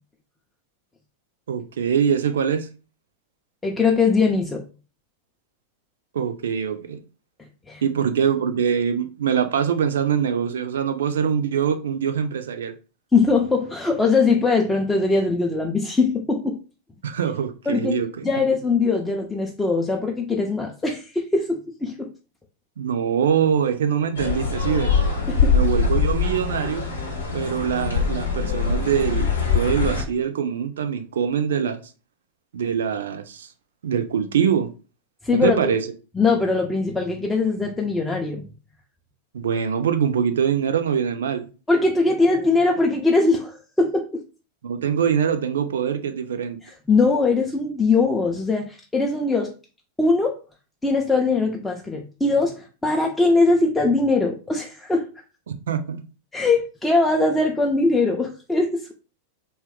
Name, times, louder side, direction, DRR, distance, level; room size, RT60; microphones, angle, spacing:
voice 1, 1.5-2.7 6.1-7.0 7.8-12.7 17.0-18.3 22.8-25.0 25.5-26.9 27.3-31.8 32.5-33.5 33.8-34.7 35.3-35.9 39.3-41.5 44.6-46.6 55.5-56.1, right 8 dB, 65° right, 0.3 m, -23 dB
voice 2, 3.6-4.6 7.7-7.8 13.1-16.6 17.7-18.0 18.2-22.1 25.3-25.6 35.2-35.7 36.2-38.5 41.7-44.2 46.6-49.5 50.0-50.4 50.8-55.1 56.3-58.9, left 3 dB, 10° left, 0.4 m, -21 dB
sound 1, 24.2-30.0, left 5 dB, 75° left, 0.8 m, -23 dB
2.8 x 2.2 x 3.5 m
figure-of-eight pair, 90°, 0 cm